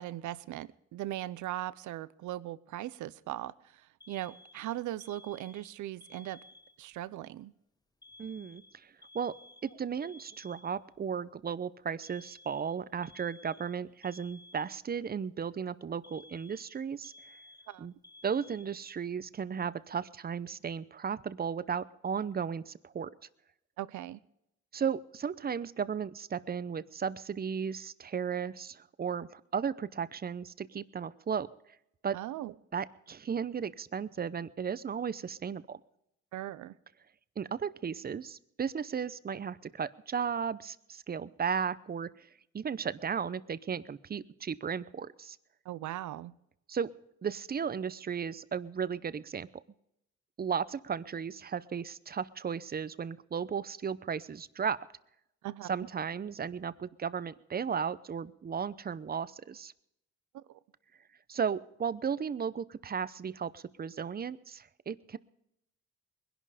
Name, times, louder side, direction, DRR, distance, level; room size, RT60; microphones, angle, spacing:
voice 1, 0.0-6.4 6.8-7.5 17.7-17.9 23.8-24.2 32.1-32.5 36.3-36.8 45.6-46.3 55.4-55.7 60.3-60.6, right 14 dB, 75° right, 18 dB, 0.7 m, -39 dB
Alarm, 4.0-7.0 8.0-11.0 12.0-15.0 16.0-19.0, left 2 dB, 15° left, 1.4 m, -56 dB
voice 2, 8.2-9.3 9.6-17.4 17.8-17.9 18.2-23.1 24.7-31.5 32.0-32.2 32.7-35.8 37.4-42.3 42.5-45.4 46.7-46.9 47.2-49.5 50.4-54.8 55.7-59.7 61.3-65.2, right 7 dB, 30° right, 17 dB, 0.7 m, -35 dB
21.0 x 11.0 x 5.0 m, 0.79 s
cardioid pair, 90°, 30 cm